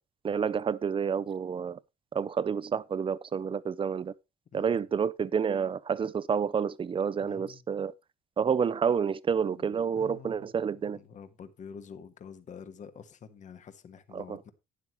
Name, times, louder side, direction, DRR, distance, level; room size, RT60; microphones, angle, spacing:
voice 1, 0.2-1.8 2.1-4.1 4.5-7.9 8.4-11.0 14.1-14.4, right 6 dB, 30° right, 0.7 m, -29 dB
voice 2, 4.5-4.8 7.2-7.6 9.5-10.5 10.9-14.5, left 7 dB, 45° left, 1.4 m, -48 dB
12.0 x 9.7 x 3.1 m
cardioid pair, 110°, 17 cm